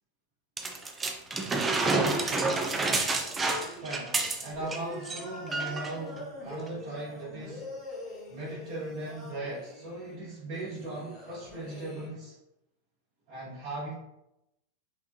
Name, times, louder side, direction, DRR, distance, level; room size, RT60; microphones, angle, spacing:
sound 1, 0.6-4.8 5.0-5.2 5.5-5.9 6.7-6.8, right 3 dB, 15° right, 0.6 m, -29 dB
sound 2, 1.8-12.1, left 1 dB, 20° left, 1.5 m, -44 dB
voice 1, 3.3-7.7 8.3-12.4 13.3-13.9, right 2 dB, 55° right, -9 dB, 1.5 m, -39 dB
5.4 x 3.6 x 2.7 m, 0.87 s
figure-of-eight pair, 90°, 0 cm